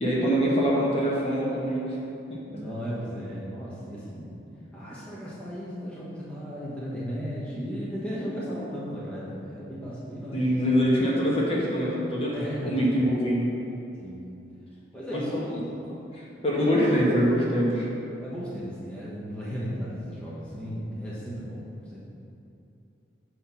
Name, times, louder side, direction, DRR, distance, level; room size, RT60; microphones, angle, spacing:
voice 1, 0.0-2.0 10.3-13.5 15.1-17.9, equal, 30° left, -5 dB, 1.2 m, -25 dB
voice 2, 2.5-4.3 4.7-10.7 12.3-12.9 14.0-14.3 14.9-15.6 16.6-17.1 18.2-21.6 21.9-22.0, equal, 5° left, -9 dB, 1.0 m, -35 dB
6.4 x 4.4 x 5.6 m, 2.9 s
head